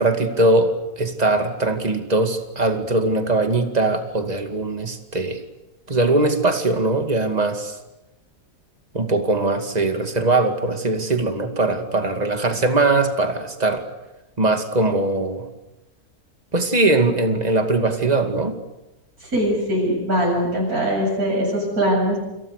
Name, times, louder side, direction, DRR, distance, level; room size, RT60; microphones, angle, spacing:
voice 1, 0.0-5.4 5.9-7.8 8.9-13.8 14.4-15.5 16.5-18.6, right 2 dB, 25° right, 6 dB, 2.5 m, -21 dB
voice 2, 19.2-22.2, equal, 85° right, -3 dB, 8.8 m, -21 dB
29.0 x 27.5 x 6.7 m, 0.97 s
omnidirectional pair, 1.5 m